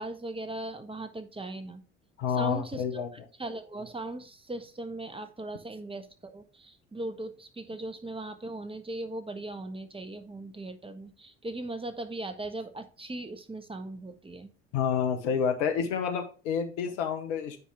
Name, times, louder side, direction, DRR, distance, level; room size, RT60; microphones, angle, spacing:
voice 1, 0.0-1.8 2.3-3.1 3.4-14.5, right 2 dB, 15° right, 9 dB, 1.3 m, -39 dB
voice 2, 2.2-3.1 14.7-17.6, left 7 dB, 75° left, 6 dB, 1.4 m, -29 dB
9.5 x 4.8 x 3.5 m, 0.36 s
hypercardioid pair, 55°, 36 cm